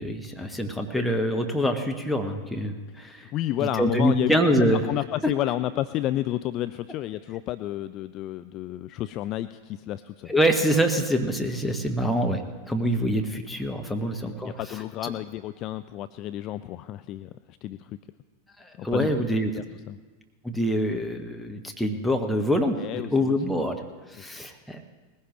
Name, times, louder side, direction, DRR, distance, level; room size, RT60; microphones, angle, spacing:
voice 1, 0.0-3.3 3.6-4.9 10.3-12.4 12.7-14.5 15.0-15.1 18.6-19.5 20.4-23.8 24.1-24.8, equal, ahead, 2 dB, 1.0 m, -25 dB
voice 2, 3.0-4.3 4.6-10.3 14.0-18.0 18.8-20.0 22.8-23.4, left 14 dB, 35° left, 12 dB, 0.3 m, -31 dB
19.5 x 16.0 x 3.1 m, 1.3 s
figure-of-eight pair, 90°, 0 cm